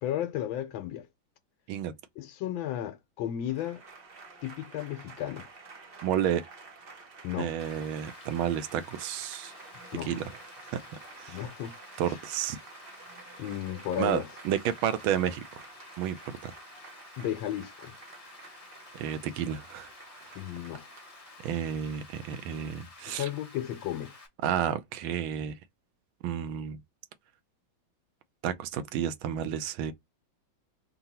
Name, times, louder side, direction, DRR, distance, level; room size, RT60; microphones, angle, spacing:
voice 1, 0.0-1.1 2.2-3.8 4.4-5.5 7.2-7.5 9.9-10.2 11.3-11.7 12.1-12.2 13.4-14.3 17.2-17.9 20.3-20.8 23.1-24.2, left 11 dB, 85° left, 1.5 m, -34 dB
Applause / Crowd, 3.4-22.0, right 4 dB, 45° right, 0.7 m, -51 dB
voice 2, 6.0-6.4 7.4-9.5 10.0-10.4 10.7-10.8 11.2-11.4 12.0-12.6 14.0-15.4 16.0-16.5 18.9-19.9 21.4-23.3 24.4-25.6 26.2-26.8 28.4-29.9, right 9 dB, 85° right, 1.4 m, -31 dB
Rain, 7.6-24.3, left 3 dB, 30° left, 0.6 m, -52 dB
3.8 x 2.3 x 4.1 m
omnidirectional pair, 2.2 m